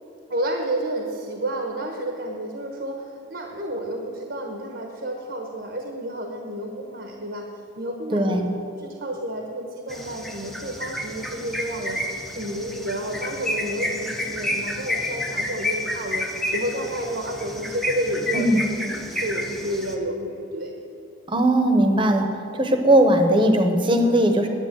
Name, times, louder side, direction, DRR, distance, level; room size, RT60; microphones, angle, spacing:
voice 1, 0.3-3.0 3.3-7.5 7.8-8.4 8.7-18.6 18.9-20.7, right 1 dB, 60° right, 2 dB, 1.1 m, -30 dB
voice 2, 8.1-8.5 18.3-18.6 21.3-22.3 22.5-24.5, right 1 dB, 25° right, 5 dB, 1.0 m, -18 dB
sound 1, 9.9-20.0, left 1 dB, ahead, 0.7 m, -30 dB
10.5 x 8.5 x 7.3 m, 2.7 s
head